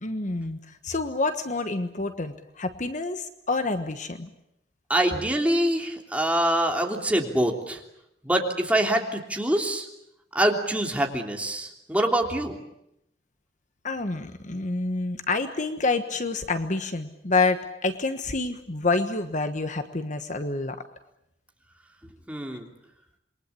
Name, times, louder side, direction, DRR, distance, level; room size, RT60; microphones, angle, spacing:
voice 1, 0.0-4.3 13.8-20.8, left 3 dB, 45° left, 9 dB, 1.3 m, -28 dB
voice 2, 4.9-7.8 8.2-9.9 10.3-12.6 22.3-22.7, right 1 dB, 10° right, 2 dB, 3.2 m, -25 dB
27.5 x 22.5 x 8.4 m, 0.80 s
head